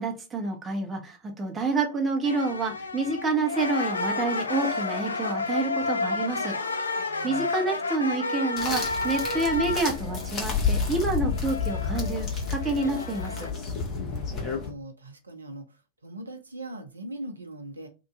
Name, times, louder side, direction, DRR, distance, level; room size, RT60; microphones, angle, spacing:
voice 1, 0.0-6.6 7.2-13.5, right 3 dB, 20° right, 0.9 m, -28 dB
sound 1, 2.2-13.5, left 3 dB, 75° left, 0.4 m, -31 dB
voice 2, 7.0-7.5 14.1-17.9, right 1 dB, 75° right, 0.6 m, -41 dB
sound 2, 8.6-14.7, left 5 dB, 35° left, 1.0 m, -30 dB
2.9 x 2.5 x 2.4 m
figure-of-eight pair, 90°, 0 cm